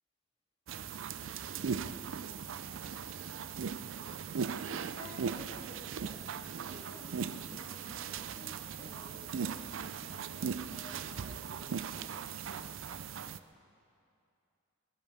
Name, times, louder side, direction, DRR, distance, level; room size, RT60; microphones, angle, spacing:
sound 1, 0.7-13.4, right 6 dB, 70° right, 0.5 m, -39 dB
voice 1, 4.9-6.3 6.7-12.3, equal, 25° left, -3 dB, 2.5 m, -54 dB
19.0 x 12.5 x 5.7 m, 2.6 s
head